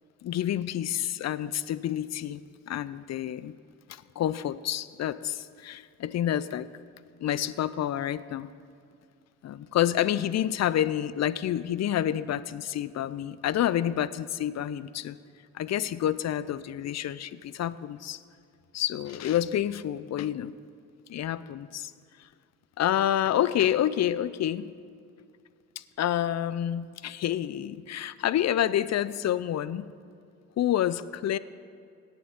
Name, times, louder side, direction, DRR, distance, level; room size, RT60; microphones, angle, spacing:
voice 1, 0.2-2.4 2.7-3.5 3.9-6.7 7.2-8.5 9.4-15.2 15.5-18.2 18.7-20.5 21.1-21.9 22.8-24.7 25.8-29.9 30.6-31.4, left 11 dB, 50° left, 17 dB, 0.5 m, -28 dB
17.5 x 9.0 x 3.6 m, 2.4 s
hypercardioid pair, 50°, 36 cm